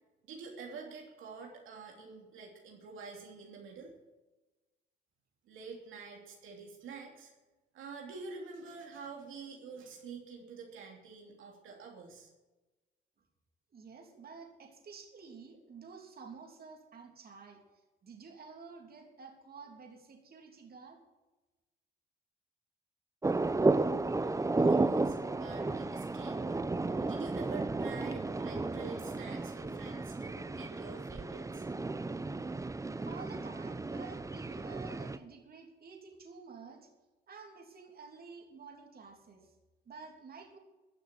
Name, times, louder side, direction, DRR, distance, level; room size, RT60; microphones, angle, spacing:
voice 1, 0.2-3.9 5.4-7.3 7.7-12.3 24.2-26.5 27.1-31.7, right 5 dB, 85° right, 0 dB, 2.9 m, -47 dB
voice 2, 13.7-17.6 18.0-21.0 33.0-36.9 37.3-39.5 39.8-40.6, right 5 dB, 50° right, 2 dB, 3.2 m, -50 dB
sound 1, 23.2-35.2, right 3 dB, 15° right, 0.7 m, -33 dB
14.5 x 6.7 x 9.7 m, 1.1 s
cardioid pair, 90°, 20 cm